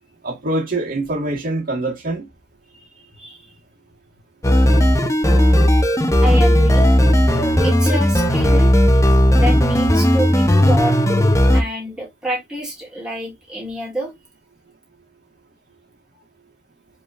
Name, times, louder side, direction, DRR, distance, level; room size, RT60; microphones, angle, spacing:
voice 1, 0.2-2.2, right 2 dB, 50° right, 1.6 m, -24 dB
voice 2, 2.7-3.6 6.2-6.9 7.6-8.7 9.4-11.0 11.5-14.1, equal, 5° right, 1.7 m, -27 dB
sound 1, 4.4-11.6, equal, 15° left, 0.7 m, -15 dB
5.0 x 3.5 x 2.5 m
head